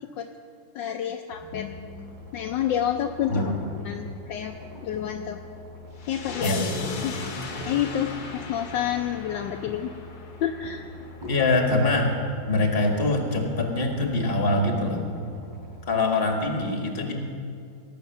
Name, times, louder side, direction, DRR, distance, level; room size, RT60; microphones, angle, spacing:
voice 1, 0.7-2.0 2.3-3.5 3.8-4.5 4.8-5.4 6.1-6.6 7.0-7.1 7.6-9.9 10.4-10.9, left 10 dB, 75° left, 5 dB, 1.2 m, -29 dB
sound 1, 1.3-15.8, left 3 dB, 75° right, 5.0 m, -45 dB
sound 2, 2.3-2.4 3.0-4.0 4.5-5.1 5.7-9.1 9.5-10.0 10.6-12.0 12.7-13.1 13.4-13.5, left 1 dB, 10° right, 3.7 m, -44 dB
sound 3, 6.0-11.0, left 4 dB, 55° left, 1.5 m, -36 dB
voice 2, 6.4-6.8 11.3-12.1 12.5-15.2 15.9-17.1, left 2 dB, 30° left, 2 dB, 1.7 m, -24 dB
18.0 x 8.1 x 5.9 m, 2.4 s
omnidirectional pair, 2.1 m